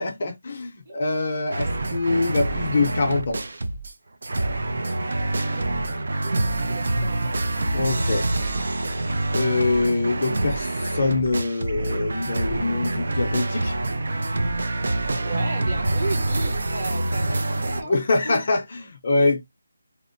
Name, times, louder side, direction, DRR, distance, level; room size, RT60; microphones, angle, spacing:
voice 1, 0.0-3.4 7.7-8.3 9.3-13.7 17.9-19.4, left 3 dB, 35° left, 0.6 m, -24 dB
sound 1, 1.5-3.9 4.2-17.8, right 2 dB, 55° right, 0.4 m, -26 dB
voice 2, 4.9-6.4 6.7-7.3 15.2-18.0 18.2-18.4, right 2 dB, 30° right, 0.9 m, -35 dB
2.8 x 2.0 x 2.5 m
figure-of-eight pair, 175°, 0 cm